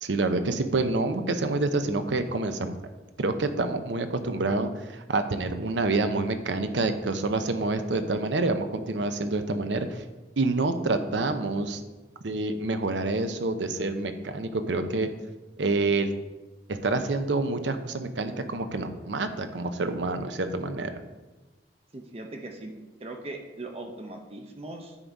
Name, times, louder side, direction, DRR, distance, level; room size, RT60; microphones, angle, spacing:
voice 1, 0.0-2.7 3.2-10.0 10.4-11.8 12.2-15.1 15.6-16.1 16.7-20.9, right 3 dB, 80° right, 9 dB, 0.7 m, -27 dB
voice 2, 21.9-22.7 23.0-25.0, right 2 dB, 35° right, 4 dB, 0.6 m, -39 dB
9.8 x 4.0 x 4.6 m, 1.2 s
head